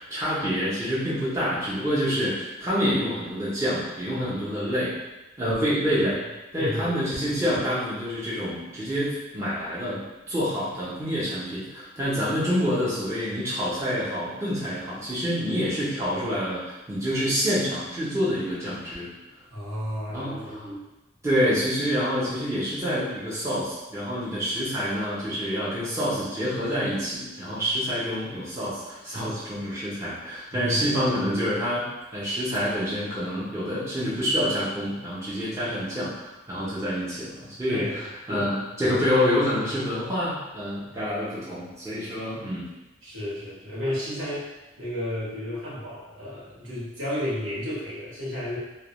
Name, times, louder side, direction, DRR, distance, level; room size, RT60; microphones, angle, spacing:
voice 1, 0.0-4.9 5.4-6.2 6.5-19.1 20.1-20.8 21.2-31.9 32.1-37.8 38.3-42.7, equal, 15° right, -10 dB, 0.5 m, -27 dB
voice 2, 6.6-7.0 19.5-20.5 30.5-31.0 37.7-38.0 40.9-41.0 42.1-42.2 43.0-44.5 44.8-48.6, left 1 dB, 75° right, -8 dB, 0.9 m, -32 dB
2.2 x 2.1 x 2.9 m, 1.0 s
head